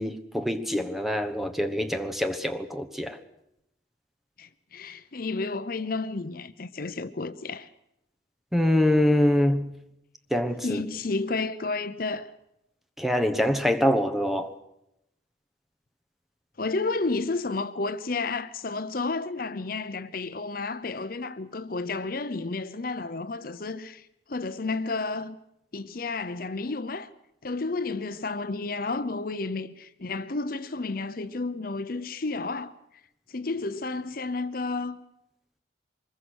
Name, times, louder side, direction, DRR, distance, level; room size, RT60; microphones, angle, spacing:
voice 1, 0.0-3.2 8.5-9.7 10.3-10.8 13.0-14.5, left 1 dB, ahead, 1.1 m, -24 dB
voice 2, 4.4-7.7 10.6-12.3 16.6-25.4 25.7-27.1 27.4-32.7 33.3-35.0, left 3 dB, 50° left, 0.8 m, -31 dB
24.5 x 21.5 x 6.4 m
head